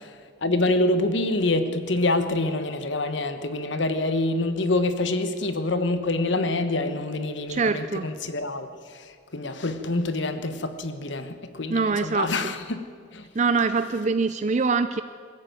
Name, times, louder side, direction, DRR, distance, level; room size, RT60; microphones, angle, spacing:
voice 1, 0.4-12.9 13.1-13.3, left 2 dB, 65° left, 1.3 m, -26 dB
voice 2, 7.5-8.1 11.7-12.5 13.3-15.0, right 4 dB, 35° right, 0.5 m, -24 dB
21.5 x 13.5 x 9.2 m
head